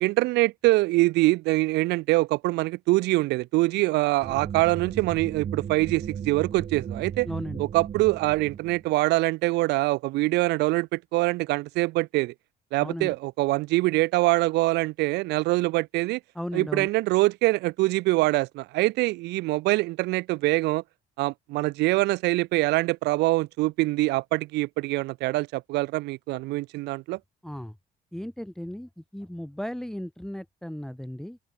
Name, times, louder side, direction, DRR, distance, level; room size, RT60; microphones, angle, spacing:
voice 1, 0.0-7.3 7.6-12.3 12.7-16.2 16.5-20.8 21.2-27.2, right 20 dB, 85° right, 0.9 m, -24 dB
sound 1, 4.2-8.9, right 8 dB, 45° right, 1.8 m, -36 dB
voice 2, 7.3-7.6 12.8-13.1 16.3-16.9 27.4-27.8 28.1-31.4, equal, 5° left, 1.4 m, -36 dB
open air
cardioid pair, 110°, 17 cm